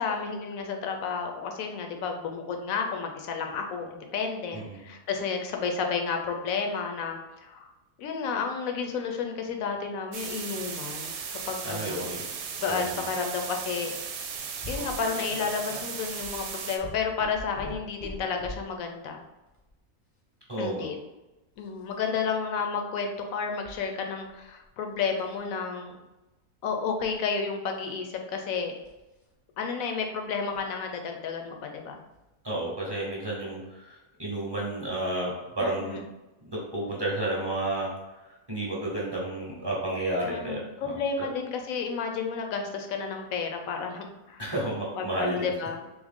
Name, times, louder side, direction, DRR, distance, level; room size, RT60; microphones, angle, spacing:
voice 1, 0.0-7.7 8.0-11.2 11.5-12.1 12.6-13.9 14.7-19.2 20.6-21.0 21.6-26.0 26.6-28.7 29.6-32.0 35.8-36.0 40.3-44.5 44.9-45.8, left 5 dB, 70° left, 4 dB, 1.0 m, -31 dB
sound 1, 10.1-16.8, right 6 dB, 75° right, 1.0 m, -36 dB
voice 2, 11.6-12.2 12.7-13.0 20.5-20.8 32.4-36.0 36.4-37.9 38.3-41.0 44.4-45.5, right 1 dB, 20° right, -5 dB, 0.9 m, -31 dB
sound 2, 14.6-18.8 19.5-19.7 21.5-21.9 23.6-23.8 24.3-24.7 25.1-25.4 26.8-27.1 28.8-29.0 30.5-30.6 32.1-32.2 32.9-33.0, left 1 dB, 20° left, 0.7 m, -42 dB
3.6 x 3.2 x 3.6 m, 1.0 s
omnidirectional pair, 1.6 m